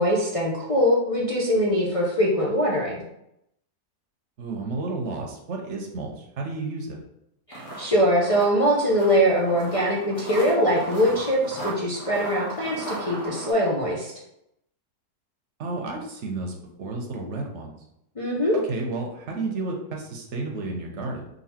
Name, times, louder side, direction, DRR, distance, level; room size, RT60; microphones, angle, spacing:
voice 1, 0.0-3.0 7.5-14.1 18.2-18.5, equal, 55° left, -5 dB, 0.3 m, -22 dB
voice 2, 4.4-7.0 15.6-16.5 16.8-17.8 18.7-21.3, right 3 dB, 55° right, 1 dB, 1.0 m, -31 dB
sound 1, 7.5-13.5, right 2 dB, 85° left, 1.6 m, -36 dB
3.9 x 2.8 x 4.2 m, 0.80 s
omnidirectional pair, 1.7 m